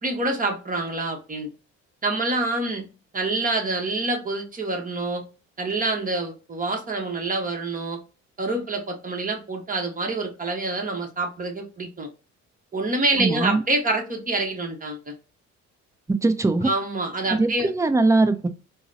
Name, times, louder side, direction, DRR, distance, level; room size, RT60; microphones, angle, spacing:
voice 1, 0.0-1.5 2.0-2.9 3.1-5.2 5.6-8.0 8.4-12.1 12.7-15.1 16.6-17.7, right 2 dB, 25° right, 0.9 m, -26 dB
voice 2, 13.2-13.6 16.1-16.7 17.3-18.5, right 2 dB, 10° right, 0.4 m, -21 dB
3.8 x 2.0 x 2.6 m
cardioid pair, 90°, 30 cm